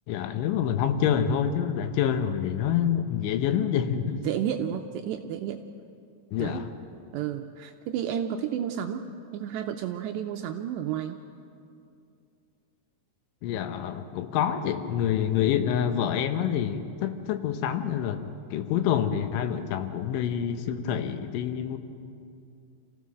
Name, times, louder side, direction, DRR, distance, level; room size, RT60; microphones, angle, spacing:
voice 1, 0.1-4.3 6.3-6.7 13.4-18.2 18.5-21.8, left 9 dB, 80° left, 8 dB, 3.3 m, -27 dB
voice 2, 4.2-5.6 6.4-6.6 7.1-11.2, right 9 dB, 85° right, 5 dB, 2.5 m, -31 dB
27.5 x 15.5 x 6.3 m, 2.5 s
omnidirectional pair, 5.5 m